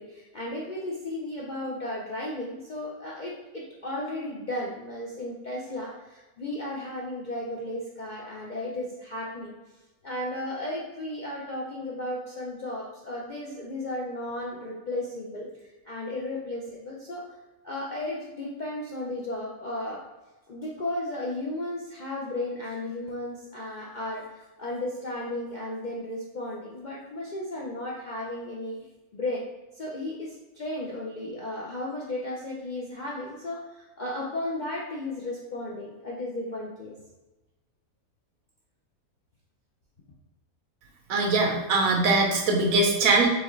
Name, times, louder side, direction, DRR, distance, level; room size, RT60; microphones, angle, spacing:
voice 1, 0.0-9.5 10.0-15.5 15.8-17.2 17.6-20.0 20.5-28.8 29.1-29.4 29.7-36.9, left 1 dB, 55° left, -4 dB, 0.5 m, -34 dB
voice 2, 41.1-43.3, right 3 dB, 75° right, 2 dB, 1.2 m, -22 dB
4.6 x 3.5 x 3.1 m, 1.1 s
omnidirectional pair, 1.5 m